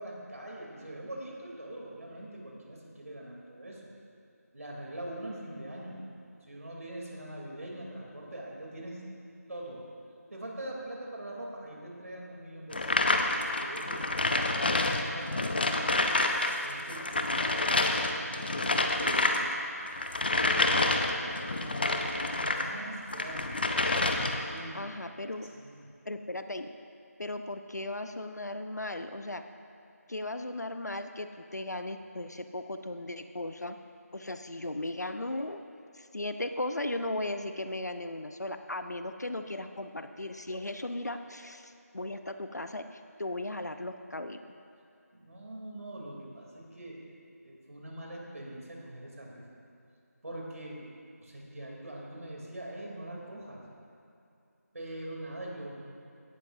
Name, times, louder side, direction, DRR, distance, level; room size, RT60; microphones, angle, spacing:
voice 1, 0.0-3.9 4.5-6.1 6.4-9.1 9.5-9.8 10.3-12.9 13.5-16.0 16.6-19.4 20.3-23.6 24.5-24.8 25.5-25.8 45.1-47.0 47.4-49.4 50.2-50.8 51.2-53.6 54.7-55.9, right 1 dB, 65° right, -2 dB, 3.3 m, -43 dB
sound 1, 12.7-22.7 23.1-24.5, left 2 dB, 35° left, 0.7 m, -28 dB
voice 2, 24.7-25.5 26.0-26.7 27.2-29.4 30.1-33.8 34.1-35.6 35.9-44.4, left 1 dB, 85° left, 8 dB, 0.8 m, -37 dB
17.0 x 12.5 x 2.7 m, 2.6 s
figure-of-eight pair, 170°, 9 cm